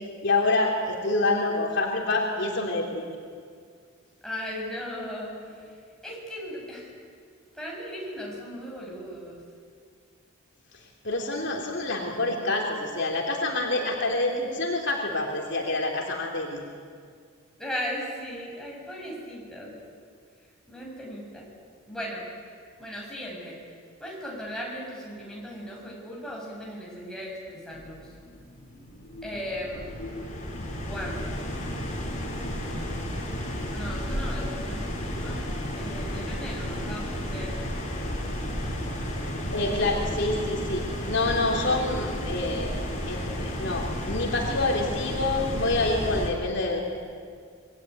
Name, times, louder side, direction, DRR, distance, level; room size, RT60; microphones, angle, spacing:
voice 1, 0.2-3.0 10.7-16.6 39.5-42.7 43.1-46.8, left 2 dB, 55° left, 0 dB, 3.3 m, -27 dB
voice 2, 4.2-5.8 6.0-6.9 7.5-9.4 17.6-19.8 20.7-21.5 21.9-22.2 22.8-23.6 24.0-28.0 29.2-29.9 30.5-31.6 33.7-35.4 35.7-37.6, equal, 5° left, -4 dB, 6.9 m, -37 dB
sound 1, 27.7-46.3, equal, 35° left, 5.6 m, -32 dB
26.5 x 22.5 x 9.5 m, 2.1 s
head